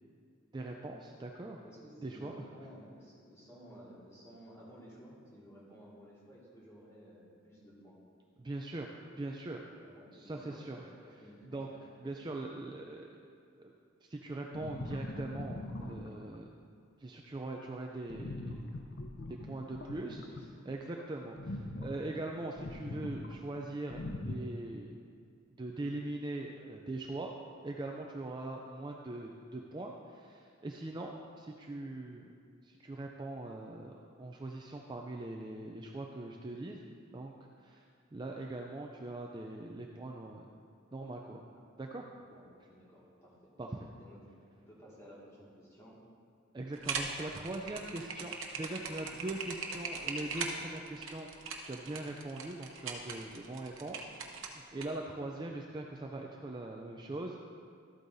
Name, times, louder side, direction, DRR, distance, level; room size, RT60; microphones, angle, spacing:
voice 1, 0.5-1.6 2.0-2.3 8.4-8.9 9.1-9.6 10.1-10.9 11.5-11.7 12.0-13.1 13.6-13.7 14.1-16.5 17.0-18.7 19.3-20.2 20.7-25.0 25.6-27.3 27.6-32.3 32.6-36.8 37.1-37.3 37.6-37.8 38.1-40.5 40.9-41.4 41.8-42.0 43.6-43.8 46.5-51.3 51.6-54.1 54.3-57.4, right 2 dB, 20° right, 1 dB, 0.4 m, -41 dB
voice 2, 1.6-8.0 9.8-11.6 12.0-12.1 19.8-20.5 20.8-21.1 42.3-43.5 44.0-46.0 55.0-55.6, equal, 15° left, -7 dB, 2.0 m, -55 dB
sound 1, 14.5-16.4 18.1-20.7 21.4-23.4 23.9-24.4, left 2 dB, 55° left, 0.6 m, -41 dB
sound 2, 46.7-54.9, right 4 dB, 80° right, 0.9 m, -40 dB
12.5 x 8.4 x 2.7 m, 2.2 s
head